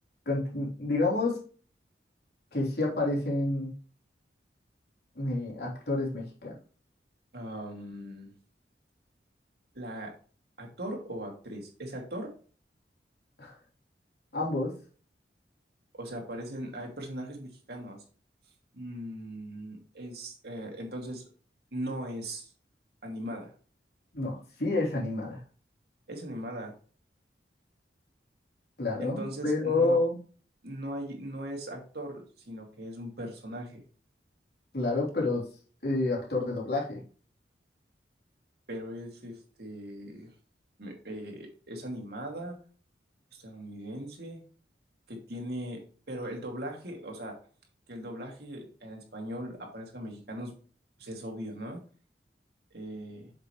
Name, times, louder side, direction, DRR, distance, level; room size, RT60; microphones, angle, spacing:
voice 1, 0.2-1.4 2.5-3.7 5.1-6.5 13.4-13.5 14.3-14.7 24.1-25.4 28.8-30.1 34.7-35.5 35.8-37.0, left 2 dB, 65° left, -3 dB, 3.4 m, -29 dB
voice 2, 7.3-8.3 9.7-10.1 10.6-12.3 15.9-18.0 18.7-21.3 21.7-22.5 23.0-23.5 26.1-26.7 29.0-30.0 30.6-33.8 38.7-40.3 40.8-42.6 43.3-44.4 45.1-45.8 46.1-47.4 47.9-50.6 51.0-51.8 52.7-53.3, right 1 dB, 65° right, 1 dB, 2.5 m, -39 dB
8.0 x 6.8 x 3.2 m, 0.40 s
head